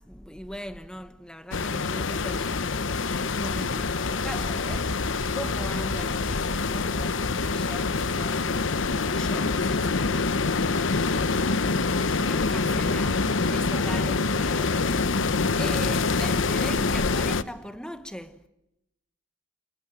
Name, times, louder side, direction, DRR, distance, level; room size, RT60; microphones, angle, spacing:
voice 1, 0.0-18.5, equal, 5° left, 1.3 m, -40 dB
sound 1, 1.5-17.4, left 4 dB, 90° left, 0.9 m, -26 dB
sound 2, 4.2-8.7, equal, 35° left, 2.5 m, -43 dB
29.0 x 26.5 x 7.4 m
head